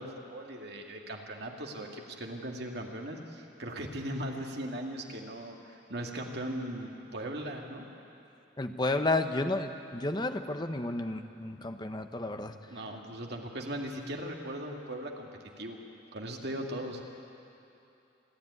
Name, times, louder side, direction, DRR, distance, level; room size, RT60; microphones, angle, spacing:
voice 1, 0.0-7.8 12.7-15.3 15.6-15.8 16.1-17.0, right 1 dB, 60° right, 1 dB, 2.2 m, -38 dB
voice 2, 8.6-12.5, left 2 dB, 20° left, 7 dB, 0.9 m, -31 dB
27.5 x 11.5 x 9.6 m, 2.8 s
head